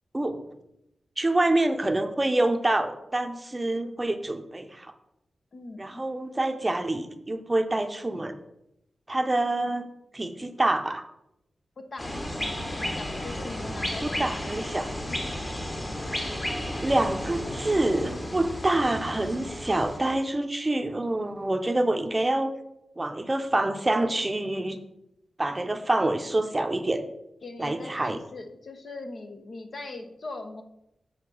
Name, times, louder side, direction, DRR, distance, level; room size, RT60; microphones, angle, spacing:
voice 1, 1.2-4.9 5.8-8.4 9.1-9.9 10.1-11.1 14.0-14.9 16.8-22.5 23.0-24.8 25.4-27.0 27.6-28.2, right 2 dB, 20° right, 7 dB, 0.7 m, -26 dB
voice 2, 5.5-6.0 11.8-14.6 27.4-30.6, left 2 dB, 60° left, 5 dB, 1.0 m, -41 dB
sound 1, 12.0-20.0, left 1 dB, 25° left, 1.3 m, -33 dB
7.6 x 4.2 x 6.2 m, 0.83 s
wide cardioid pair, 95°, 0 cm